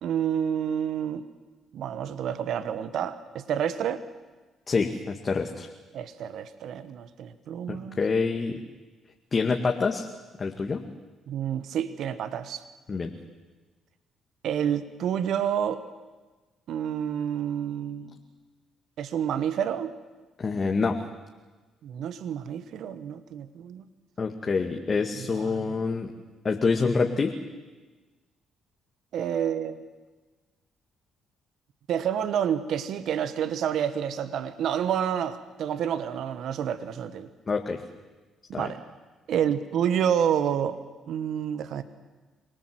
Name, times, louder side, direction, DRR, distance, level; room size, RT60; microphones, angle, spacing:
voice 1, 0.0-1.2 1.7-4.0 5.9-8.0 11.3-12.6 14.4-15.8 16.7-18.2 19.0-19.9 21.8-23.8 25.2-25.8 29.1-29.8 31.9-37.3 38.5-38.8 39.3-40.8 41.1-41.8, right 9 dB, 70° right, 12 dB, 1.2 m, -29 dB
voice 2, 4.7-5.7 7.7-8.6 9.3-10.1 10.4-10.8 12.9-13.1 20.4-21.0 24.2-26.1 26.4-27.4 37.5-37.8 38.5-38.7, left 4 dB, 40° left, 3 dB, 2.0 m, -26 dB
25.5 x 19.0 x 7.9 m, 1.3 s
supercardioid pair, 60°, 0 cm